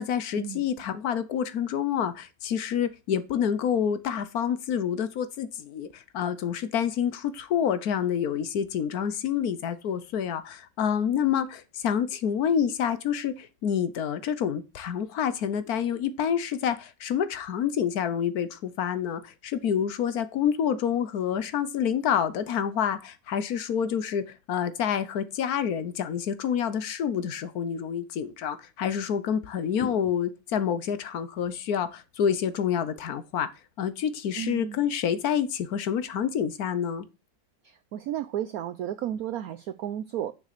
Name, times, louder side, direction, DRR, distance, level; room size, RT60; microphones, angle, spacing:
voice 1, 0.0-33.5 33.8-37.1, left 8 dB, 60° left, 1.2 m, -28 dB
voice 2, 34.4-34.8 37.6-40.3, right 11 dB, 70° right, 0.9 m, -33 dB
6.5 x 6.4 x 6.7 m
omnidirectional pair, 2.0 m